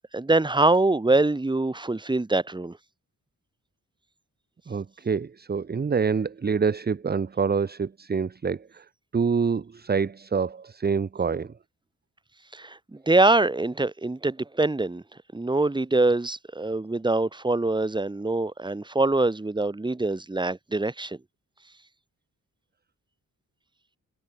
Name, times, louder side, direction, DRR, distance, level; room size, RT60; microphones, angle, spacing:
voice 1, 0.0-2.8 12.5-15.0 15.3-21.2, right 2 dB, 15° right, 1.9 m, -24 dB
voice 2, 4.7-8.8 9.1-11.5, right 5 dB, 30° right, 1.0 m, -26 dB
wide cardioid pair, 150°, 34 cm